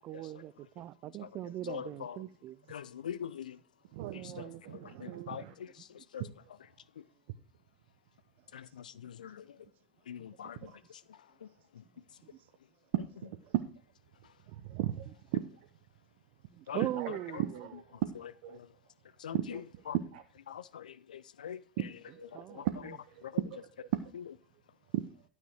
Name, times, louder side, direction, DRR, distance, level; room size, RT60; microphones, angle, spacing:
voice 1, 0.0-2.6 5.1-5.2 16.5-17.7 22.3-22.6, right 14 dB, 45° right, 0.5 m, -40 dB
voice 2, 1.6-2.2 2.7-3.6 4.1-6.3 8.5-9.6 10.1-11.5 13.0-13.3 16.7-17.5 18.1-18.7 19.2-20.0 20.5-23.5 24.1-24.4, left 9 dB, 80° left, 0.5 m, -44 dB
voice 3, 3.9-5.5 6.2-6.3 10.6-10.7 13.2-13.6 14.5-15.4 17.0-18.1 18.4-18.6 19.3-19.6 20.1-20.2 21.8-23.2 23.5-24.0 24.9-25.0, right 14 dB, 65° right, 0.9 m, -37 dB
12.5 x 6.5 x 4.8 m
figure-of-eight pair, 70°, 4 cm